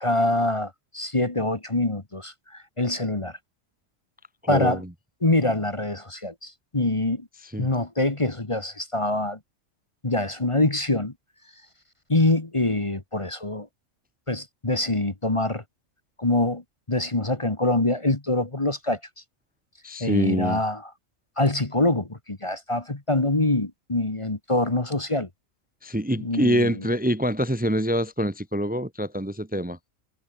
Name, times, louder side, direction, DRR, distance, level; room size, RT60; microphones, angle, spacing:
voice 1, 0.0-3.4 4.5-4.8 5.2-7.3 7.6-9.4 10.0-11.1 12.1-13.7 14.3-15.6 16.2-16.6 16.9-19.0 20.0-20.9 21.4-25.3 26.2-26.9, left 2 dB, 25° left, 1.7 m, -25 dB
voice 2, 4.4-4.9 7.4-7.7 19.8-20.6 25.8-29.8, equal, 5° right, 1.3 m, -25 dB
omnidirectional pair, 1.4 m